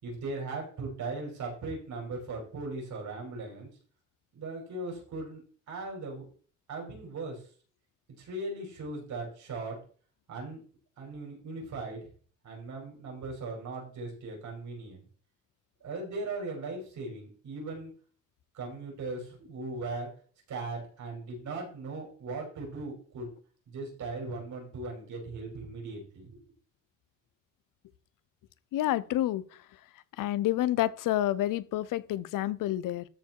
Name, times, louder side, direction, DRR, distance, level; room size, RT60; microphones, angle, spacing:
voice 1, 0.0-3.7 4.3-5.4 5.7-6.2 6.7-7.5 8.2-9.8 10.3-10.6 11.0-12.1 12.4-15.0 15.8-17.9 18.5-20.1 20.5-23.3 23.7-26.4, right 3 dB, 65° right, 5.7 m, -38 dB
voice 2, 28.7-29.4 30.2-33.0, left 14 dB, 90° left, 0.7 m, -28 dB
13.5 x 4.8 x 4.6 m
cardioid pair, 105°, 32 cm